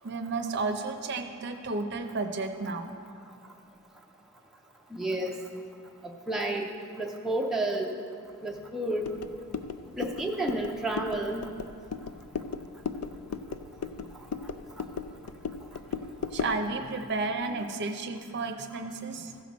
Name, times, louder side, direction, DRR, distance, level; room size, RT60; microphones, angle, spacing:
voice 1, 0.0-2.9 9.9-10.0 15.9-16.0 16.3-19.4, right 3 dB, 50° right, 6 dB, 0.6 m, -32 dB
voice 2, 4.9-5.4 6.3-6.7 7.0-7.9 8.4-9.0 10.0-11.5, right 1 dB, ahead, -1 dB, 0.5 m, -30 dB
sound 1, 9.0-16.6, left 5 dB, 85° left, 0.4 m, -37 dB
15.0 x 6.0 x 4.1 m, 2.3 s
head